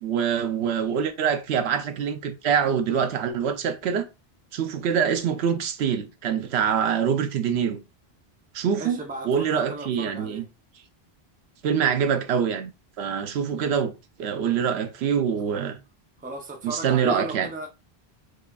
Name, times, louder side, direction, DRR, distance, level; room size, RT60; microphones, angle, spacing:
voice 1, 0.0-4.1 4.5-7.8 8.5-9.0 9.2-10.4 11.6-12.7 13.0-13.9 14.2-15.8 16.6-17.5, right 7 dB, 85° right, 0.8 m, -25 dB
voice 2, 8.7-10.5 16.2-17.7, right 2 dB, 10° right, 0.5 m, -36 dB
4.8 x 2.4 x 2.3 m
omnidirectional pair, 1.1 m